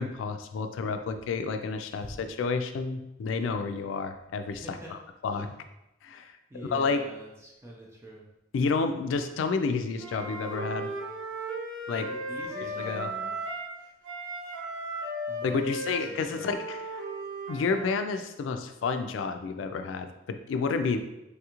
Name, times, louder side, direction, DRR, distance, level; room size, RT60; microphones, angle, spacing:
voice 1, 0.0-5.5 6.0-7.0 8.5-10.9 11.9-12.1 12.6-13.1 15.4-17.0 17.5-21.0, left 4 dB, 85° left, 7 dB, 0.3 m, -30 dB
voice 2, 4.5-4.9 5.3-5.5 6.5-8.2 12.1-13.4 15.3-16.5, equal, 15° right, -3 dB, 0.4 m, -44 dB
Wind instrument woodwind instrument, 10.0-13.7 14.0-17.9, right 1 dB, 75° right, 1.1 m, -36 dB
3.3 x 2.4 x 2.9 m, 0.91 s
head